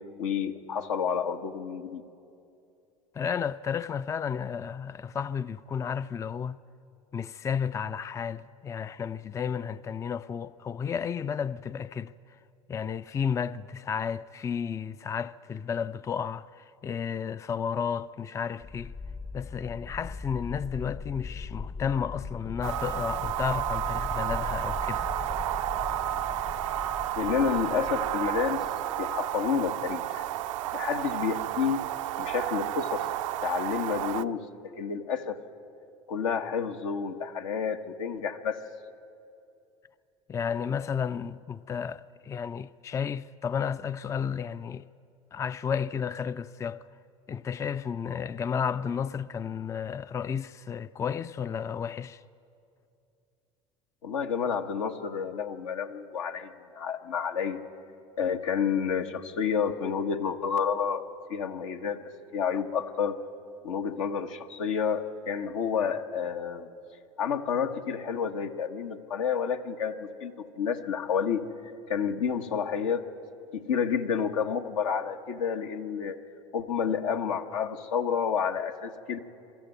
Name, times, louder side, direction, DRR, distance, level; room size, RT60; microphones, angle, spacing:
voice 1, 0.2-2.0 27.2-28.6 29.0-30.2 30.7-31.9 32.2-33.1 33.4-34.4 34.8-35.4 36.1-38.6 54.0-57.6 58.2-61.0 61.3-62.0 62.3-63.2 63.6-66.7 67.2-71.4 71.9-73.1 73.5-76.2 76.5-79.2, left 7 dB, 75° left, 1.1 m, -30 dB
voice 2, 3.1-6.6 7.1-12.1 12.7-18.9 19.3-25.0 40.3-44.8 45.3-46.9 47.3-52.2, left 7 dB, 20° left, 0.4 m, -32 dB
sound 1, 18.6-29.2, left 5 dB, 35° left, 1.0 m, -39 dB
sound 2, 22.6-34.2, right 14 dB, 70° right, 0.5 m, -31 dB
22.5 x 13.0 x 9.0 m
hypercardioid pair, 75°, 17 cm